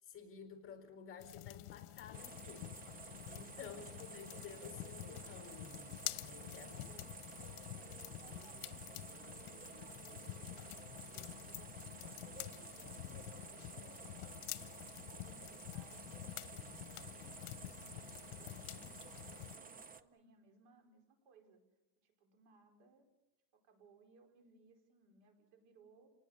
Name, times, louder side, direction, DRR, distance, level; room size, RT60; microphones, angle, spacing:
voice 1, 0.0-2.7 3.3-6.7, left 6 dB, 25° left, 6 dB, 4.4 m, -53 dB
sound 1, 1.2-19.6, left 19 dB, 90° left, 0.9 m, -49 dB
sound 2, 2.1-20.0, right 5 dB, 20° right, 0.8 m, -53 dB
voice 2, 3.5-4.2 6.4-10.9 11.4-12.7 13.4-14.8 15.1-16.7 17.3-21.6 22.0-23.1 23.5-26.1, right 4 dB, 65° right, 5 dB, 5.1 m, -66 dB
28.5 x 19.5 x 6.7 m, 0.90 s
cardioid pair, 155°, 49 cm